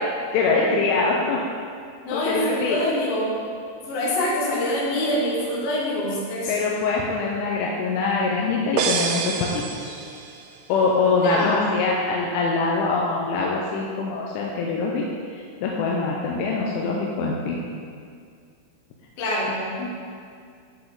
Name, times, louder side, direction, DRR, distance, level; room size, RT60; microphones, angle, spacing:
voice 1, 0.3-1.4 2.1-2.8 6.5-10.0 10.7-15.1 15.3-17.6 19.8-19.9, left 4 dB, 80° left, -3 dB, 2.9 m, -24 dB
voice 2, 2.0-3.4 3.9-6.5 11.1-11.7 19.2-19.9, left 1 dB, 65° left, -5 dB, 3.5 m, -25 dB
sound 1, 8.8-10.6, right 6 dB, 85° right, 3.3 m, -27 dB
9.9 x 5.9 x 4.0 m, 2.3 s
omnidirectional pair, 6.0 m